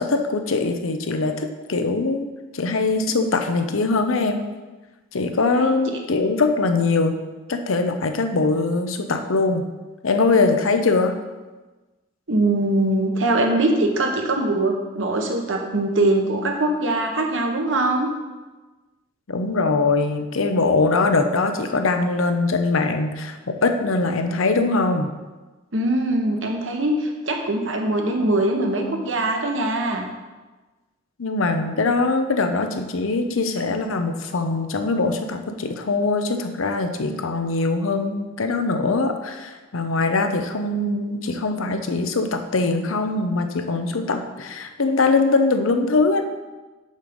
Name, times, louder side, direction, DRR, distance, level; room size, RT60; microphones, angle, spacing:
voice 1, 0.0-4.4 5.1-7.2 7.5-9.7 10.0-11.2 19.3-25.1 31.2-46.2, left 3 dB, 85° left, 6 dB, 0.8 m, -22 dB
voice 2, 12.3-18.1 25.7-30.0, right 2 dB, 65° right, 2 dB, 1.2 m, -22 dB
6.5 x 6.4 x 5.3 m, 1.2 s
head